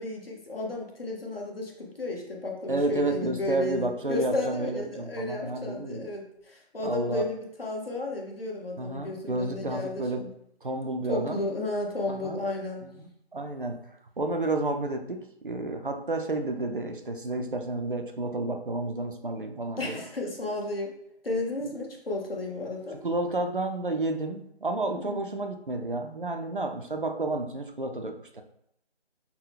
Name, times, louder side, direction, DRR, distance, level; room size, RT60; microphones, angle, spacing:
voice 1, 0.0-10.3 11.1-12.9 19.8-20.9 21.2-23.0 25.0-25.2, left 2 dB, 60° left, -1 dB, 1.1 m, -33 dB
voice 2, 2.7-6.1 6.8-7.2 8.8-10.3 10.6-11.5 12.1-12.4 13.3-13.8 14.2-20.0 23.0-28.4, right 2 dB, 55° right, 5 dB, 0.5 m, -31 dB
5.8 x 2.1 x 3.4 m, 0.75 s
figure-of-eight pair, 160°, 33 cm